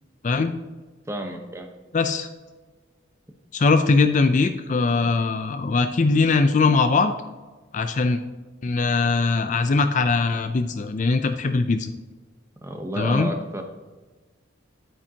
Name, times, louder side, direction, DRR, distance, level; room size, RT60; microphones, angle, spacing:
voice 1, 1.1-1.7 12.6-13.6, right 1 dB, 15° right, 4 dB, 0.9 m, -31 dB
voice 2, 1.9-2.3 3.5-7.1 7.7-8.2 8.6-11.9 13.0-13.3, left 4 dB, 40° left, 8 dB, 0.4 m, -21 dB
10.0 x 8.9 x 2.8 m, 1.3 s
head